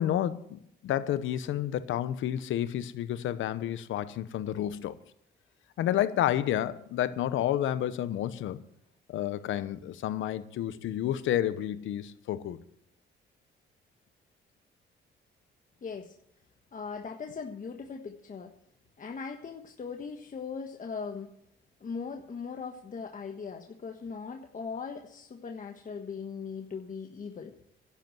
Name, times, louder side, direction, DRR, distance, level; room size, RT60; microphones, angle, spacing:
voice 1, 0.0-5.0 5.8-8.6 9.1-12.6, left 11 dB, 80° left, 1.0 m, -30 dB
voice 2, 15.8-16.1 16.7-18.5 19.0-21.3 21.8-27.5, left 5 dB, 40° left, 1.5 m, -39 dB
11.5 x 8.2 x 9.0 m
cardioid pair, 90°, 20 cm